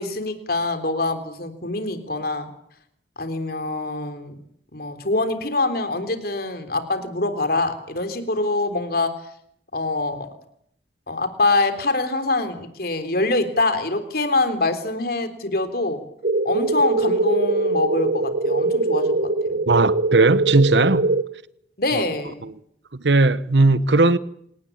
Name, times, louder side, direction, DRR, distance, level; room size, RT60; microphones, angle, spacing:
voice 1, 0.0-2.5 3.2-4.3 4.7-9.1 9.7-10.3 11.1-16.0 16.4-19.6 21.8-22.4, left 2 dB, 55° left, 3.6 m, -24 dB
sound 1, 16.2-21.2, right 2 dB, 50° right, 1.0 m, -22 dB
voice 2, 19.7-21.1 21.9-22.0 22.4-22.5 22.9-24.2, right 3 dB, 75° right, 1.1 m, -18 dB
27.5 x 18.5 x 8.8 m
head